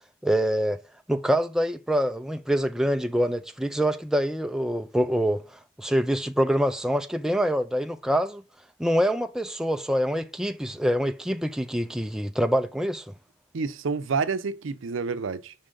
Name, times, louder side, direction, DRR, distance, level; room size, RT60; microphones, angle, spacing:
voice 1, 0.2-0.8 1.1-5.4 5.8-8.4 8.8-13.0, equal, 5° right, 0.3 m, -25 dB
voice 2, 13.5-15.5, right 5 dB, 90° right, 0.5 m, -28 dB
5.4 x 3.8 x 5.0 m
head